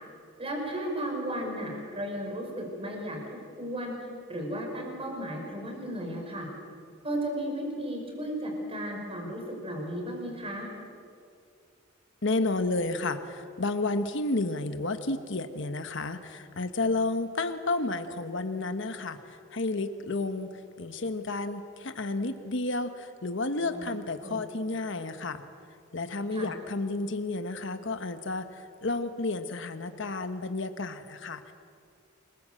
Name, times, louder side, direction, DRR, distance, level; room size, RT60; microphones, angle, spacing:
voice 1, 0.4-3.2 3.6-3.9 4.3-6.5 7.0-10.7 23.7-23.8 24.2-24.4 26.3-26.5, right 1 dB, 30° right, 1 dB, 5.4 m, -34 dB
voice 2, 12.2-20.5 20.8-25.5 25.9-31.5, left 2 dB, 65° left, 8 dB, 1.3 m, -31 dB
28.0 x 22.0 x 7.8 m, 2.4 s
head